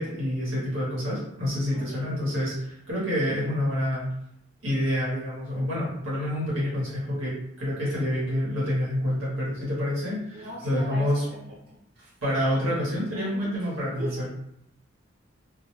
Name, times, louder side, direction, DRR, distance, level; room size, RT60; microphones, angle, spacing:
voice 1, 0.0-4.1 4.6-11.2 12.2-14.3, left 1 dB, 80° right, -6 dB, 1.0 m, -28 dB
voice 2, 10.3-11.4 12.0-12.1 13.2-13.5 14.0-14.3, equal, 50° right, -8 dB, 1.0 m, -38 dB
2.1 x 2.1 x 3.0 m, 0.75 s
head